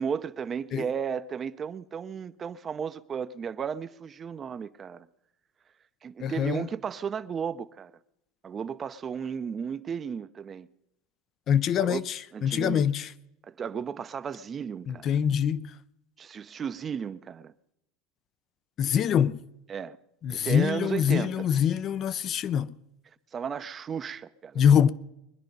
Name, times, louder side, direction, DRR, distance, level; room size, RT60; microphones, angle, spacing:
voice 1, 0.0-5.1 6.0-7.9 8.4-10.7 11.8-12.0 12.3-12.9 13.4-15.1 16.2-17.5 19.7-20.0 20.3-21.5 23.3-24.6, right 7 dB, 30° right, 0.6 m, -34 dB
voice 2, 6.2-6.7 11.5-12.0 12.4-13.1 14.9-15.7 18.8-19.4 20.2-22.7 24.6-24.9, left 8 dB, 40° left, 0.5 m, -24 dB
22.0 x 10.5 x 5.3 m
supercardioid pair, 125°, 0 cm